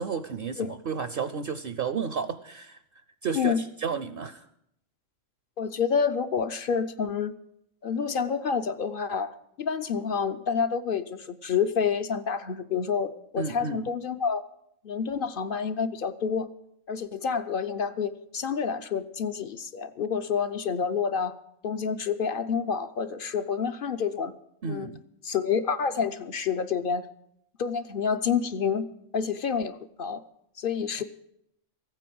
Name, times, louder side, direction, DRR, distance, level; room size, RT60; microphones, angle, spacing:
voice 1, 0.0-2.8 3.2-4.5 13.4-13.8 24.6-25.0 31.0-31.1, right 6 dB, 55° right, 12 dB, 0.8 m, -32 dB
voice 2, 5.6-7.3 7.8-14.5 14.8-16.5 16.9-21.3 21.6-24.3 24.7-24.9 25.2-27.1 27.6-28.9 29.1-30.2 30.6-31.0, left 6 dB, 55° left, 11 dB, 0.8 m, -28 dB
15.0 x 9.1 x 7.7 m, 0.75 s
omnidirectional pair, 1.3 m